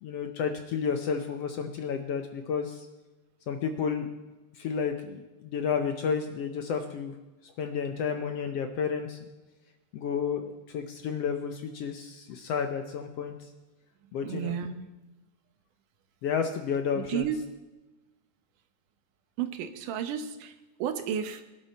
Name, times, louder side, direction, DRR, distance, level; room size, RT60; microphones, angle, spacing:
voice 1, 0.0-2.9 3.5-4.1 4.6-7.1 7.4-9.2 9.9-13.3 14.1-14.5 16.2-17.3, left 6 dB, 70° left, 6 dB, 1.6 m, -31 dB
voice 2, 14.2-14.9 16.9-17.4 19.4-21.5, right 8 dB, 85° right, 9 dB, 2.6 m, -32 dB
21.5 x 11.0 x 4.2 m, 1.1 s
omnidirectional pair, 3.6 m